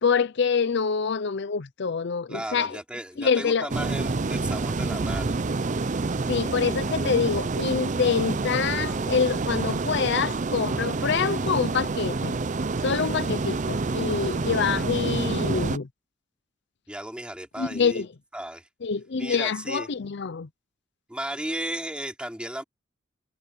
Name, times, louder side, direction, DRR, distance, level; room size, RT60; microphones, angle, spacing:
voice 1, 0.0-2.8 3.2-3.7 6.3-12.4 12.8-15.9 17.6-18.1 18.8-20.5, left 5 dB, 60° left, 0.6 m, -26 dB
voice 2, 2.3-5.4 16.9-18.0 18.3-18.7 19.2-19.9 21.1-22.6, right 1 dB, 5° right, 3.4 m, -35 dB
sound 1, 3.7-15.8, right 3 dB, 40° right, 0.6 m, -28 dB
head